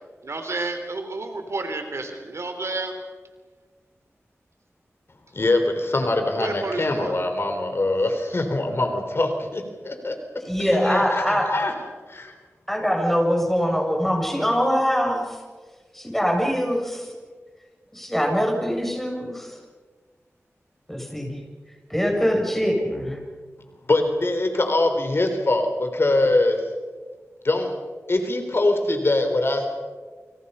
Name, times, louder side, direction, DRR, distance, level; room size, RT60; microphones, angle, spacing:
voice 1, 0.2-2.9 6.4-7.1, right 2 dB, 65° right, 6 dB, 3.4 m, -30 dB
voice 2, 5.3-10.2 10.7-11.7 12.1-12.3 23.9-26.6 27.4-27.7 28.1-29.7, left 2 dB, 55° left, 6 dB, 3.8 m, -23 dB
voice 3, 10.4-11.5 12.7-15.4 15.9-17.1 17.9-19.6 20.9-21.4 21.9-23.2, equal, 5° left, 1 dB, 7.4 m, -23 dB
29.0 x 26.5 x 5.6 m, 1.4 s
wide cardioid pair, 65°, 5 cm